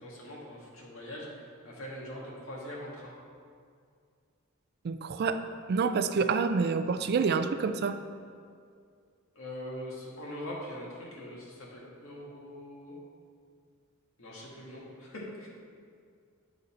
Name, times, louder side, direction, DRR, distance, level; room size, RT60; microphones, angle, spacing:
voice 1, 0.0-3.1 9.3-13.0 14.2-15.5, left 1 dB, 85° left, -3 dB, 1.6 m, -42 dB
voice 2, 4.8-5.4 5.7-8.0, right 5 dB, 50° right, 10 dB, 0.3 m, -27 dB
9.4 x 3.9 x 4.3 m, 2.2 s
head